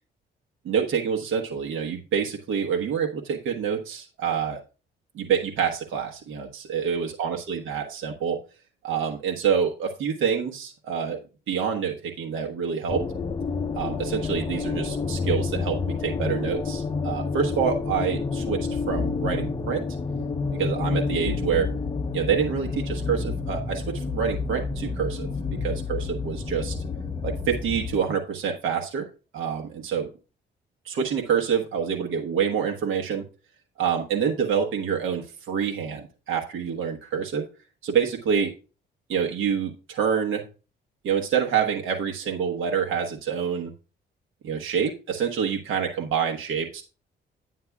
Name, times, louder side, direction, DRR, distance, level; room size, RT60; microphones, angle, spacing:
voice 1, 0.6-4.6 5.1-8.4 8.8-11.2 11.5-13.0 13.7-19.8 20.5-21.7 22.1-26.8 27.2-29.1 29.3-30.1 30.8-33.2 33.8-37.4 37.8-38.5 39.1-40.4 41.0-43.7 44.4-46.8, right 7 dB, 80° right, 2 dB, 1.3 m, -27 dB
sound 1, 12.9-28.0, left 4 dB, 25° left, 0.8 m, -29 dB
9.5 x 9.4 x 2.4 m, 0.33 s
cardioid pair, 90°, 20 cm